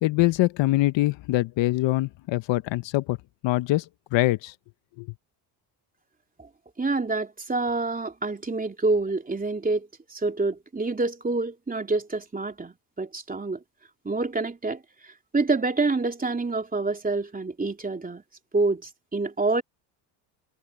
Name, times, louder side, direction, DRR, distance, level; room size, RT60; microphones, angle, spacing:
voice 1, 0.0-3.2 3.4-3.8 4.1-4.5 5.0-5.1, left 18 dB, 65° left, 1.1 m, -23 dB
voice 2, 6.8-13.6 14.0-18.2 18.5-19.6, right 3 dB, 15° right, 3.2 m, -27 dB
supercardioid pair, 85°, 48 cm